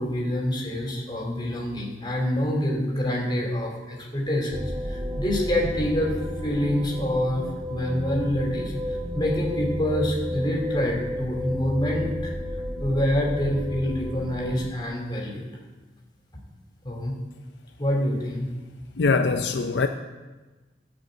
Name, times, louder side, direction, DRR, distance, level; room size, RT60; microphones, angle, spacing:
voice 1, 0.0-6.1 6.4-12.3 12.8-15.5 16.8-17.2 17.8-18.5, left 1 dB, 25° left, 2.9 m, -26 dB
sound 1, 4.5-14.7, equal, 35° right, 1.4 m, -32 dB
voice 2, 19.0-19.9, left 4 dB, 70° left, 0.5 m, -22 dB
13.5 x 5.3 x 8.2 m
head